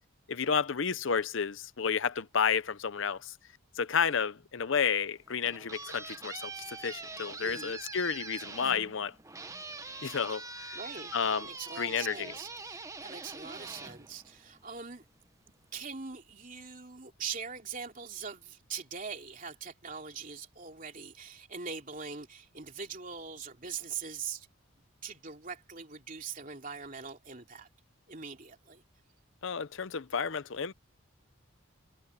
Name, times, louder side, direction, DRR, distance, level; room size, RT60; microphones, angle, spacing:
voice 1, 0.3-3.3 3.8-9.1 10.0-10.8 11.1-11.5 11.8-12.3 29.4-30.7, left 6 dB, 60° left, 0.7 m, -31 dB
sound 1, 5.2-14.8, right 3 dB, 15° right, 0.9 m, -44 dB
voice 2, 7.4-7.8 10.7-11.1 11.4-15.0 15.7-24.5 25.0-27.7 28.1-28.8, right 6 dB, 40° right, 3.0 m, -42 dB
head